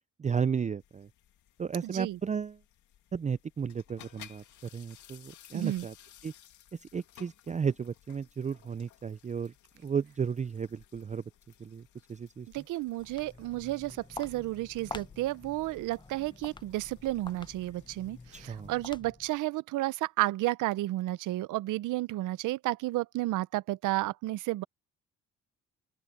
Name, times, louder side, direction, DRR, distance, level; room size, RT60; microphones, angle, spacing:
voice 1, 0.2-1.1 1.6-2.6 3.1-5.9 6.2-6.3 6.7-9.5 9.8-11.2 11.6-12.5 18.3-18.7, right 6 dB, 25° right, 0.5 m, -34 dB
sound 1, 0.8-19.0, left 11 dB, 75° left, 2.2 m, -58 dB
voice 2, 1.8-2.2 5.5-5.9 12.5-24.6, right 17 dB, 85° right, 0.7 m, -32 dB
Walk footsteps, 12.9-19.4, left 3 dB, 15° left, 0.8 m, -47 dB
open air
cardioid pair, 90°, 30 cm